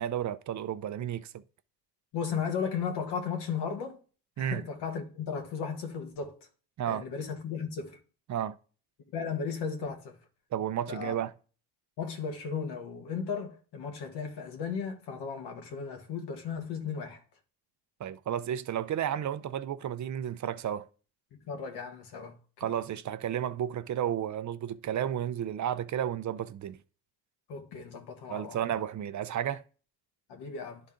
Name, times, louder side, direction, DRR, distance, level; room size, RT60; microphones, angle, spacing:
voice 1, 0.0-1.4 4.4-4.6 6.8-7.1 8.3-8.6 10.5-11.3 18.0-20.9 22.6-26.8 28.3-29.6, right 10 dB, 45° right, 0.6 m, -32 dB
voice 2, 2.1-4.0 4.4-6.4 6.9-8.0 9.1-10.1 10.9-11.1 12.0-17.2 21.5-22.4 22.6-22.7 27.5-28.6 30.3-30.8, left 6 dB, 75° left, 1.7 m, -35 dB
10.5 x 3.9 x 3.8 m
cardioid pair, 90°, 40 cm